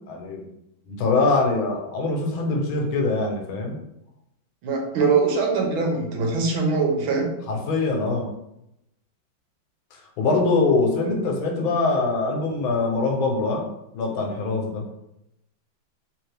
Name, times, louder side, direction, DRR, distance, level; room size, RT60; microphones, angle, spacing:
voice 1, 0.1-0.4 0.8-3.8 7.5-8.3 10.2-13.7 13.9-14.8, left 3 dB, 80° left, 1 dB, 1.6 m, -23 dB
voice 2, 4.6-7.3, right 4 dB, 80° right, 1 dB, 1.6 m, -22 dB
3.5 x 3.2 x 3.3 m, 0.83 s
omnidirectional pair, 2.2 m